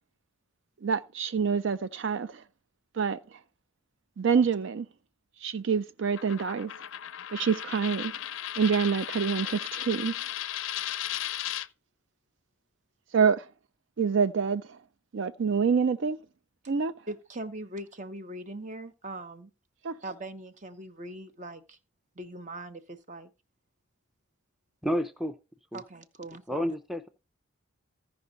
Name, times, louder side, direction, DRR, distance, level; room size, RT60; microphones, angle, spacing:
voice 1, 0.8-2.4 2.9-3.2 4.2-4.9 5.4-6.7 7.3-8.1 8.6-10.1 13.1-13.5 14.0-14.6 15.1-16.2 16.7-16.9 19.8-19.9, right 6 dB, 65° right, 0.4 m, -26 dB
Coin (dropping), 6.2-11.7, left 12 dB, 70° left, 0.4 m, -35 dB
voice 2, 17.1-19.5 20.0-21.8 22.2-23.3 25.7-26.7, right 1 dB, 35° right, 0.8 m, -41 dB
voice 3, 24.8-25.4 25.7-25.8 26.5-27.1, equal, ahead, 0.5 m, -30 dB
15.0 x 5.4 x 3.9 m
head